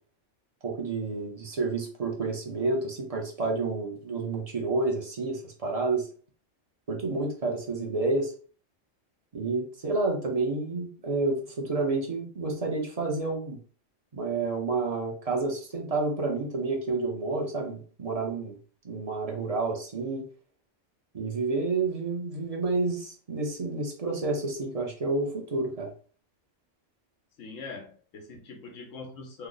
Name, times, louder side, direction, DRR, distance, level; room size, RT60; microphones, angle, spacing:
voice 1, 0.6-6.1 6.9-8.3 9.3-13.6 14.1-18.6 18.8-20.3 21.1-25.9, right 3 dB, 40° right, 0.6 m, -29 dB
voice 2, 27.4-29.5, left 4 dB, 85° left, 1.1 m, -42 dB
3.2 x 2.0 x 3.8 m
omnidirectional pair, 1.3 m